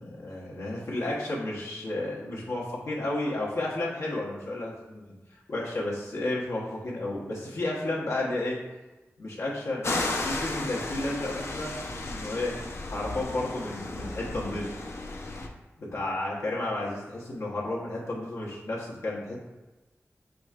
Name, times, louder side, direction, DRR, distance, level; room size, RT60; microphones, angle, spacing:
voice 1, 0.0-5.0 5.5-8.6 9.2-9.9 10.2-12.6 12.9-14.7 15.9-19.4, left 2 dB, 90° left, -5 dB, 1.1 m, -32 dB
sound 1, 9.8-15.5, left 2 dB, 60° left, 0.6 m, -34 dB
5.1 x 4.2 x 2.4 m, 1.1 s
wide cardioid pair, 95°, 5 cm